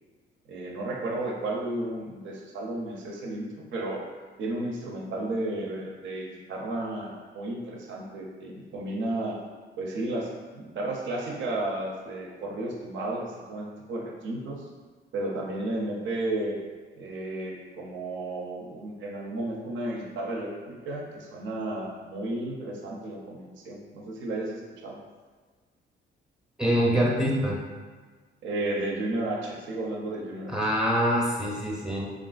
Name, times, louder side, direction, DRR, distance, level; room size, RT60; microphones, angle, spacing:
voice 1, 0.5-4.1 4.4-9.4 9.8-14.6 15.1-16.6 16.9-25.0 28.4-30.5 31.8-32.0, right 2 dB, 70° right, -1 dB, 0.5 m, -33 dB
voice 2, 26.6-27.6 30.5-32.0, equal, 5° right, -3 dB, 0.6 m, -24 dB
3.3 x 2.4 x 2.4 m, 1.4 s
cardioid pair, 90°, 20 cm